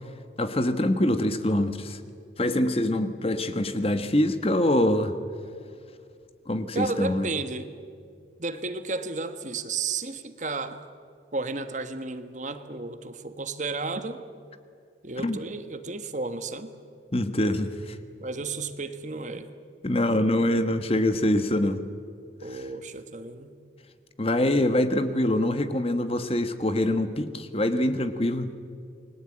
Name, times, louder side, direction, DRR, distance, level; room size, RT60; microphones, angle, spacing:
voice 1, 0.4-2.0 2.4-5.1 6.5-7.3 15.2-15.4 17.1-18.0 19.8-21.8 24.2-28.5, left 1 dB, 30° left, 10 dB, 1.3 m, -24 dB
voice 2, 6.7-7.7 8.4-10.8 11.3-14.2 15.0-16.7 18.2-19.5 22.4-23.6, right 3 dB, 40° right, 9 dB, 1.4 m, -33 dB
29.0 x 21.0 x 8.9 m, 2.3 s
head